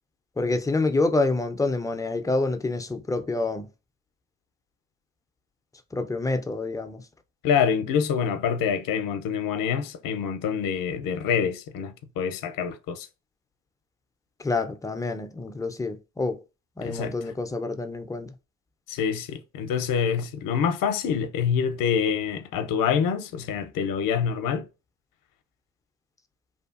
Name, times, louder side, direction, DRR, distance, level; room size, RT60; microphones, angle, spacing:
voice 1, 0.4-3.7 5.9-7.0 14.4-16.4 16.8-18.3, left 3 dB, 10° left, 0.3 m, -27 dB
voice 2, 7.4-13.1 16.8-17.3 18.9-24.6, left 7 dB, 55° left, 0.6 m, -26 dB
2.7 x 2.4 x 2.3 m
supercardioid pair, 60°, 40 cm